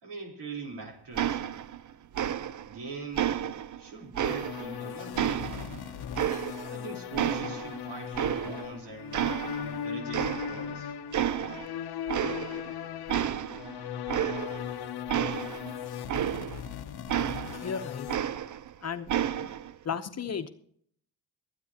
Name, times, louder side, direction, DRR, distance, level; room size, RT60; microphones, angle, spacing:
voice 1, 0.0-1.6 2.6-3.3 3.8-5.7 6.6-9.3 9.6-11.0, right 4 dB, 70° right, 1 dB, 4.1 m, -42 dB
sound 1, 1.2-1.9 2.1-2.8 3.2-4.8 5.2-6.8 7.2-8.8 9.1-9.8 10.1-10.8 11.1-11.7 12.1-12.7 13.1-16.7 17.1-18.7 19.1-19.7, right 10 dB, 45° right, 0.6 m, -31 dB
sound 2, 4.2-18.2, left 9 dB, 60° left, 0.9 m, -38 dB
voice 2, 17.6-18.1 18.8-19.1 19.4-19.5 19.8-20.5, left 6 dB, 35° left, 8 dB, 1.0 m, -34 dB
22.5 x 9.3 x 2.9 m, 0.63 s
cardioid pair, 105°, 42 cm